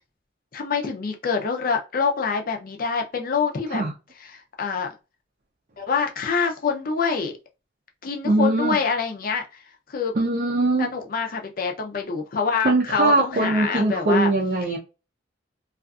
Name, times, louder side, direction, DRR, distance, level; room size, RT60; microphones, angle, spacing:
voice 1, 0.5-3.8 4.2-4.9 5.8-7.3 8.0-9.4 9.9-10.1 10.8-14.3, left 5 dB, 50° left, 0.5 m, -25 dB
voice 2, 8.2-8.8 10.2-10.9 12.6-14.8, right 2 dB, 45° right, 0.4 m, -21 dB
2.4 x 2.4 x 2.3 m
head